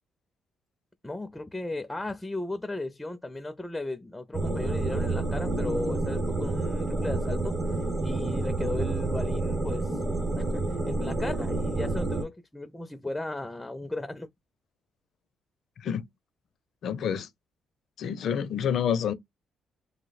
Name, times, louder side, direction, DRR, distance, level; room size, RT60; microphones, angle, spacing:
voice 1, 1.0-7.5 8.0-10.0 10.4-14.3, left 2 dB, 10° left, 0.4 m, -35 dB
sound 1, 4.3-12.2, right 2 dB, 30° right, 0.9 m, -29 dB
voice 2, 16.8-17.3 18.0-19.1, left 8 dB, 70° left, 0.4 m, -28 dB
2.7 x 2.0 x 4.0 m
cardioid pair, 90°, 0 cm